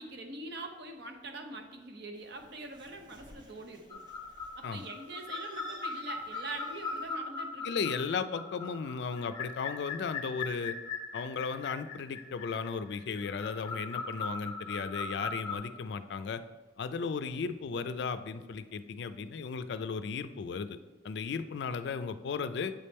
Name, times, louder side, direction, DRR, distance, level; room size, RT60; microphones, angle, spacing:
voice 1, 0.0-4.0 4.6-7.8, right 2 dB, 65° right, 3 dB, 0.8 m, -44 dB
Bird, 2.1-7.1, right 2 dB, 25° right, 0.8 m, -54 dB
sound 1, 3.9-15.6, left 4 dB, 30° left, 0.8 m, -40 dB
voice 2, 7.6-10.8 11.1-16.4 16.8-20.8 21.0-22.7, left 5 dB, 65° left, 12 dB, 0.3 m, -35 dB
7.5 x 3.4 x 4.2 m, 1.3 s
head